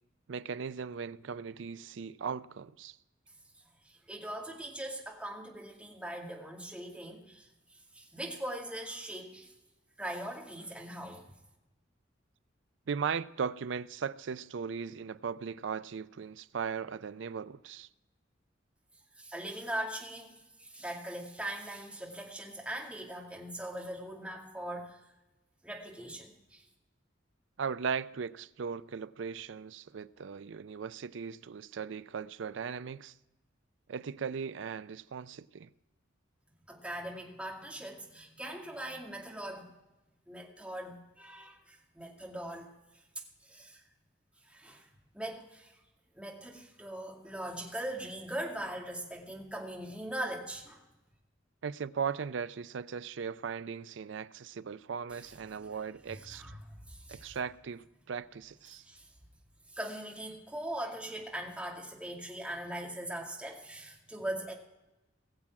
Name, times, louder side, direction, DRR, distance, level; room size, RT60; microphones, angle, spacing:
voice 1, 0.3-3.0 12.9-17.9 27.6-33.1 33.9-35.7 51.6-56.4 57.1-58.8, right 6 dB, 70° right, 0.4 m, -38 dB
voice 2, 3.8-9.5 10.0-11.3 19.1-25.0 25.6-26.6 36.7-39.7 40.3-43.0 43.4-43.8 44.4-44.9 45.1-45.8 46.1-50.8 55.1-55.7 56.1-56.6 56.9-57.3 58.7-59.1 59.7-64.5, right 1 dB, 5° right, 2.3 m, -41 dB
20.5 x 7.5 x 4.7 m
head